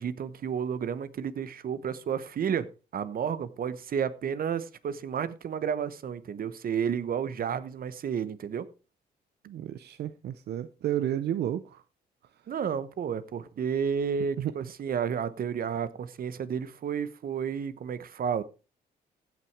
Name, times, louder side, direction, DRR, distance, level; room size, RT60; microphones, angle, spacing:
voice 1, 0.0-2.7 2.9-8.7 12.5-18.4, right 7 dB, 60° right, 1.0 m, -31 dB
voice 2, 9.5-11.8 14.4-14.5, right 11 dB, 75° right, 0.6 m, -31 dB
15.5 x 6.1 x 4.6 m
cardioid pair, 105°, 17 cm